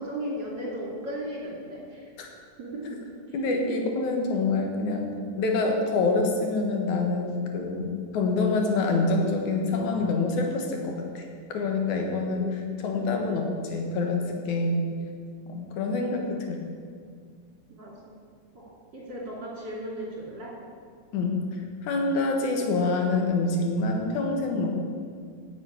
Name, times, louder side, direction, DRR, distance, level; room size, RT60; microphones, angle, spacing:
voice 1, 0.0-2.1 2.6-3.0 3.3-3.4 12.3-13.0 14.9-15.0 16.3-16.4 17.7-18.2 18.5-18.6 18.9-20.5 21.2-21.3, equal, 35° right, -4 dB, 3.2 m, -36 dB
voice 2, 3.3-5.1 5.4-11.2 11.5-14.9 15.5-16.7 21.1-21.4 21.8-24.8, left 3 dB, 80° left, 2 dB, 2.8 m, -26 dB
10.5 x 7.4 x 8.7 m, 2.1 s
omnidirectional pair, 3.4 m